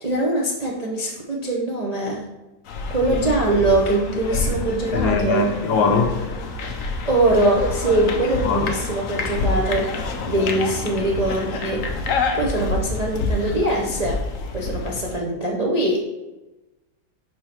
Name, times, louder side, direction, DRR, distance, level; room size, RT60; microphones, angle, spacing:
voice 1, 0.0-2.3 2.9-5.5 7.1-9.9 10.2-11.9 12.3-14.2 14.5-16.0, right 1 dB, 45° right, -3 dB, 0.5 m, -22 dB
sound 1, 2.7-15.2, left 3 dB, 60° left, 0.9 m, -27 dB
voice 2, 4.9-6.2 8.4-8.7, left 4 dB, 80° left, 4 dB, 1.6 m, -21 dB
5.6 x 4.6 x 4.4 m, 1.1 s
omnidirectional pair, 2.0 m